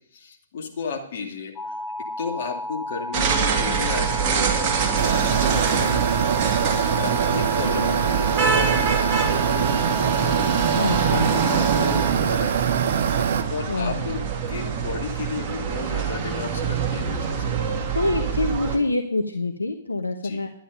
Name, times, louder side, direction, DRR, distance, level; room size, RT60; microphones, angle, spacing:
voice 1, 0.1-1.8 2.2-4.5 5.0-6.0 7.0-12.8 13.5-14.2 14.5-17.6 18.2-18.3 20.2-20.4, left 5 dB, 55° left, 2 dB, 2.5 m, -34 dB
sound 1, 1.6-12.1, left 1 dB, 15° left, 1.7 m, -32 dB
sound 2, 3.1-18.8, right 6 dB, 30° right, 2.4 m, -25 dB
sound 3, 5.0-13.4, right 8 dB, 55° right, 0.9 m, -23 dB
voice 2, 10.7-11.3 13.7-14.0 17.9-20.5, left 2 dB, 80° left, 5 dB, 1.0 m, -25 dB
11.5 x 10.0 x 5.3 m, 0.68 s
figure-of-eight pair, 115°, 0 cm